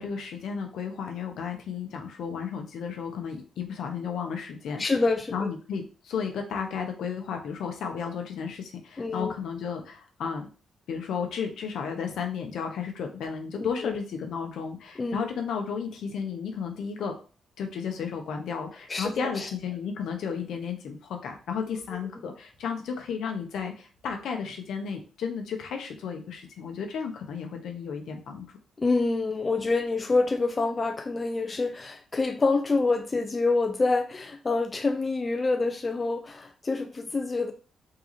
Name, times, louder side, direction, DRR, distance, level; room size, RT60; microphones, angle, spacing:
voice 1, 0.0-4.8 5.3-10.5 10.9-17.2 17.6-28.4, left 6 dB, 75° left, 0.7 m, -33 dB
voice 2, 4.8-5.5 9.0-9.3 13.6-14.0 15.0-15.3 18.9-19.5 28.8-37.5, left 3 dB, 35° left, 0.4 m, -27 dB
3.7 x 2.4 x 3.0 m
supercardioid pair, 60°, 0 cm